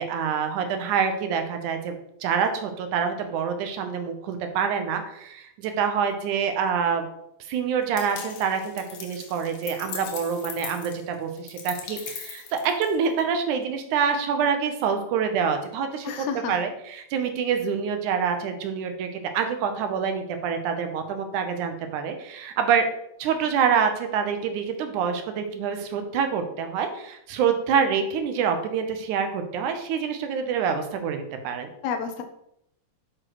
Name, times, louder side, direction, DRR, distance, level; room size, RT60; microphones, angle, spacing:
voice 1, 0.0-7.1 7.5-22.9 23.2-31.7, right 6 dB, 80° right, 6 dB, 2.4 m, -26 dB
sound 1, 8.0-13.2, left 7 dB, 90° left, 2.6 m, -39 dB
voice 2, 16.0-16.6 31.8-32.2, left 6 dB, 70° left, 6 dB, 1.6 m, -29 dB
6.3 x 5.0 x 5.9 m, 0.77 s
omnidirectional pair, 3.5 m